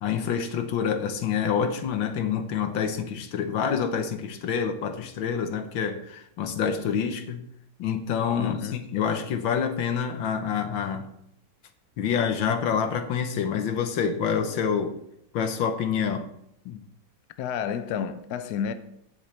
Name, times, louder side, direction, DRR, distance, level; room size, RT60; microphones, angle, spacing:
voice 1, 0.0-7.4 7.8-11.1 12.0-15.0 15.3-16.3 16.6-16.8, left 7 dB, 85° left, 1.7 m, -27 dB
voice 2, 8.4-8.8 17.4-18.7, left 8 dB, 65° left, 1.1 m, -30 dB
15.5 x 7.1 x 3.3 m
omnidirectional pair, 2.1 m